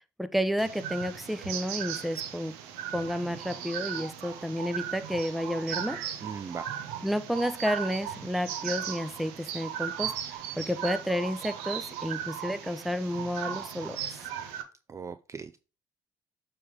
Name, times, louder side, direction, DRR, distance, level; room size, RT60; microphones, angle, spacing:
voice 1, 0.2-2.5 2.9-6.0 7.0-10.1 10.6-14.2, equal, ahead, 12 dB, 0.8 m, -31 dB
sound 1, 0.6-14.6, right 9 dB, 75° right, 0.8 m, -37 dB
voice 2, 6.2-6.6 14.9-15.6, right 5 dB, 25° right, 12 dB, 0.4 m, -39 dB
7.0 x 3.5 x 4.9 m, 0.34 s
hypercardioid pair, 50°, 11 cm